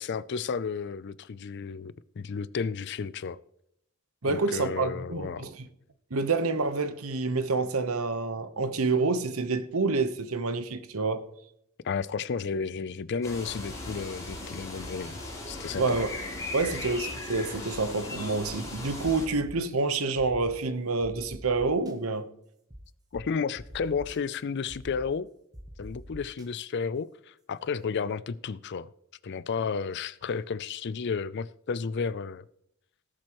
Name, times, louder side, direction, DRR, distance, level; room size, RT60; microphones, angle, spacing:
voice 1, 0.0-3.4 4.2-5.4 11.8-15.2 15.5-16.0 23.1-25.3 25.8-28.9 29.2-32.4, left 5 dB, 50° left, 0.4 m, -32 dB
voice 2, 4.2-5.7 6.1-11.3 15.8-16.1 16.5-22.3, right 3 dB, 75° right, 1.0 m, -28 dB
sound 1, 13.2-19.3, left 2 dB, 15° left, 3.5 m, -38 dB
sound 2, 19.0-19.7 20.2-20.5 21.0-21.9 22.7-22.8 23.1-23.2 23.5-24.2 24.7-25.1 25.5-26.5, equal, 15° right, 1.1 m, -45 dB
18.0 x 7.6 x 3.0 m
head